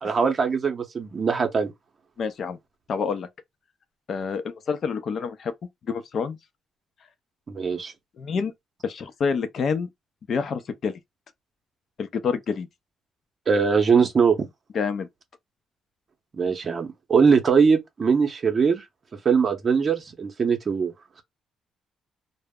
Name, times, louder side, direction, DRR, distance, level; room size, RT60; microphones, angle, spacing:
voice 1, 0.0-1.7 7.5-7.9 13.5-14.5 16.4-18.8 19.2-20.9, right 5 dB, 40° right, 0.6 m, -21 dB
voice 2, 2.2-2.6 2.9-3.3 4.1-5.5 5.9-6.4 8.2-8.5 8.8-9.9 10.3-11.0 12.0-12.7 14.7-15.1, left 5 dB, 55° left, 0.5 m, -27 dB
2.0 x 2.0 x 3.5 m
cardioid pair, 90°, 0 cm